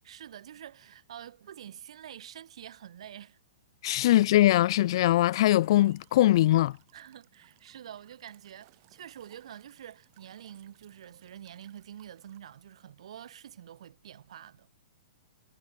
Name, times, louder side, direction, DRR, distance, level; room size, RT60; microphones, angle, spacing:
voice 1, 0.0-3.4 3.9-4.0 6.9-14.7, right 10 dB, 70° right, 2.1 m, -47 dB
voice 2, 3.8-6.8, left 14 dB, 50° left, 0.4 m, -22 dB
Walk footsteps / Chirp tweet / Stream, 3.9-12.4, right 23 dB, 40° right, 7.8 m, -64 dB
hypercardioid pair, 150°, 3 cm